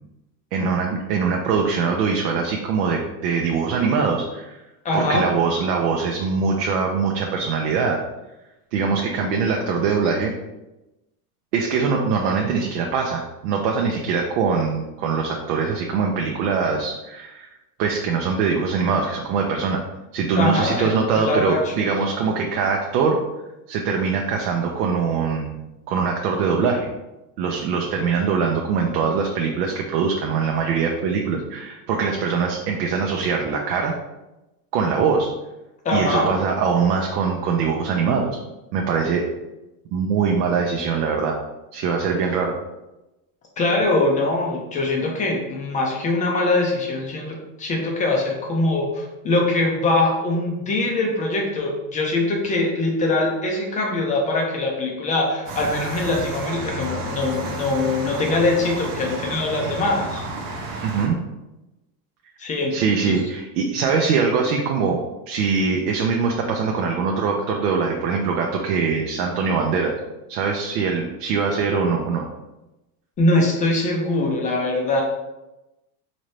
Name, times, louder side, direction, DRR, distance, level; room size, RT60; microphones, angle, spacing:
voice 1, 0.5-4.6 4.9-8.0 8.7-10.3 11.5-17.5 17.8-19.8 20.1-23.2 23.7-25.6 25.9-26.9 27.4-33.9 34.7-35.3 35.9-38.4 38.7-39.3 39.9-41.4 41.7-42.5 60.8-61.2 62.7-69.9 70.3-72.2, right 5 dB, 85° right, 1 dB, 0.7 m, -22 dB
voice 2, 4.8-5.2 20.3-21.7 35.8-36.3 43.6-60.2 62.4-62.8 63.1-63.2 73.2-75.0, left 2 dB, 20° left, 0 dB, 0.3 m, -22 dB
sound 1, 55.5-61.1, right 2 dB, 45° right, 0.7 m, -32 dB
4.1 x 2.7 x 3.1 m, 1.0 s
supercardioid pair, 140°, 47 cm